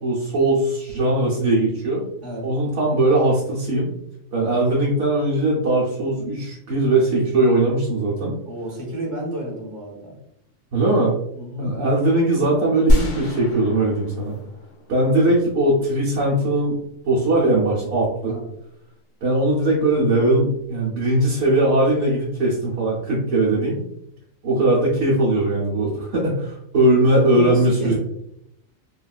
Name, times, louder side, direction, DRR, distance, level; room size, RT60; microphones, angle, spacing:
voice 1, 0.0-2.0 2.4-3.9 4.3-8.3 10.7-11.1 11.6-14.4 14.9-18.3 19.2-23.8 24.4-27.9, right 2 dB, 65° right, -5 dB, 1.1 m, -20 dB
voice 2, 8.4-10.2 11.3-11.7 18.2-18.5 27.3-27.9, right 1 dB, 25° right, -3 dB, 1.0 m, -31 dB
sound 1, 12.9-15.8, equal, 85° left, 1.2 m, -24 dB
3.6 x 2.3 x 2.3 m, 0.79 s
omnidirectional pair, 1.4 m